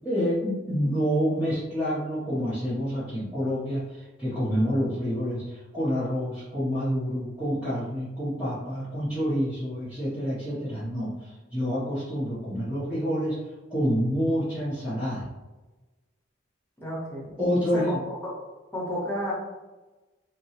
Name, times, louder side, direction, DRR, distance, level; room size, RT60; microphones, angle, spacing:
voice 1, 0.0-13.4 13.7-15.3 17.4-18.0, equal, 5° right, -13 dB, 0.6 m, -28 dB
voice 2, 16.8-17.4 17.7-17.8 18.2-18.3 18.7-19.3, equal, 10° left, -8 dB, 0.9 m, -31 dB
2.8 x 2.2 x 2.8 m, 1.1 s
head